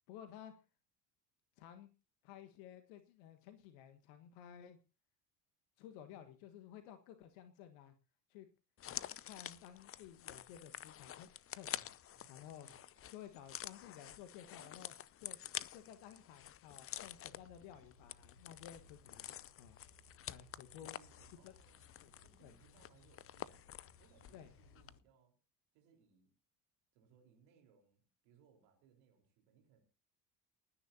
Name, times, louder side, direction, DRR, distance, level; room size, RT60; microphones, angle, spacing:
voice 1, 0.1-0.5 1.6-1.9 2.2-4.8 5.8-7.9 8.3-8.5 9.2-11.9 12.3-12.7 13.1-14.9 15.2-15.4 15.7-19.3 19.6-19.8 20.3-21.0 21.4-21.5 22.0-22.1 22.4-22.5 24.3-24.5, left 10 dB, 60° left, 9 dB, 1.6 m, -54 dB
sound 1, 8.8-24.5 24.8-24.9, left 11 dB, 25° left, 0.7 m, -49 dB
voice 2, 12.1-13.1 14.6-15.0 20.5-21.8 22.2-25.4 25.7-26.3 26.9-29.8, right 7 dB, 60° right, 3 dB, 4.4 m, -69 dB
sound 2, 17.0-25.0, left 3 dB, 75° left, 1.5 m, -65 dB
29.5 x 10.0 x 2.8 m, 0.32 s
figure-of-eight pair, 60°, 50 cm